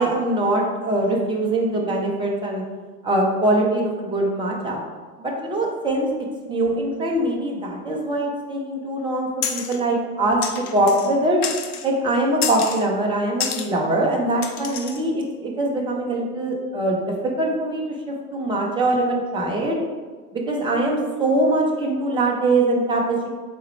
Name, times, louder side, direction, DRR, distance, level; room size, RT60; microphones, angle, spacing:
voice 1, 0.0-2.6 3.0-4.8 5.2-6.1 6.5-11.4 11.8-17.0 17.4-17.8 18.3-19.8 20.3-23.3, right 1 dB, 10° right, -1 dB, 0.8 m, -22 dB
sound 1, 9.4-9.8 10.4-11.1 11.4-11.9 12.4-12.8 13.4-13.7 14.4-15.0, left 7 dB, 80° left, 0.6 m, -29 dB
4.3 x 3.6 x 3.2 m, 1.4 s
hypercardioid pair, 90°, 45 cm